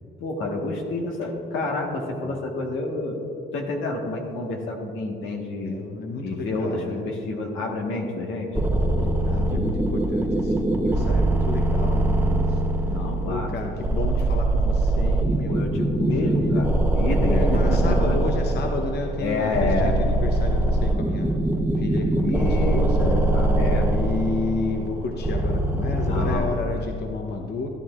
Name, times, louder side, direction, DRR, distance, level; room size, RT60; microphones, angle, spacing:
voice 1, 0.2-3.2 3.5-5.7 6.2-8.5 12.8-13.7 15.5-18.2 19.2-19.9 22.2-23.9 26.1-26.6, left 2 dB, 85° left, 0 dB, 1.4 m, -28 dB
voice 2, 5.6-7.1 8.7-12.6 13.3-15.6 16.0-16.7 17.3-21.3 21.8-23.1 23.9-27.7, left 3 dB, 55° left, 3 dB, 0.8 m, -31 dB
sound 1, 8.5-26.4, right 1 dB, 10° right, 0.8 m, -22 dB
13.0 x 11.0 x 2.4 m, 2.7 s
cardioid pair, 90°, 20 cm